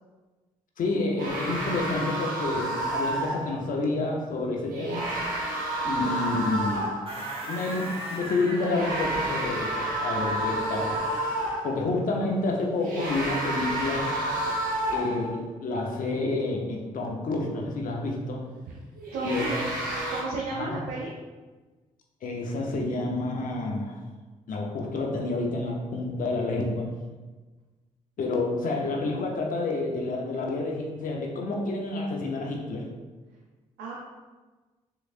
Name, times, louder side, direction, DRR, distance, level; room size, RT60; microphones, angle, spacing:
voice 1, 0.8-5.1 5.8-6.9 7.5-11.0 11.6-14.1 14.9-18.4 19.2-19.5 19.8-19.9 20.5-20.8 22.2-24.0 24.5-26.9 28.2-32.9, left 2 dB, 65° left, 0 dB, 0.7 m, -29 dB
sound 1, 1.2-3.5 4.7-7.1 8.5-11.8 12.8-15.4 19.0-20.2, right 1 dB, 70° right, 1.0 m, -30 dB
sound 2, 7.1-11.5, right 1 dB, 40° right, 1.2 m, -39 dB
voice 2, 19.1-21.1 33.8-34.0, right 3 dB, 85° right, -4 dB, 0.6 m, -33 dB
3.7 x 3.2 x 2.5 m, 1.3 s
supercardioid pair, 50°, 15 cm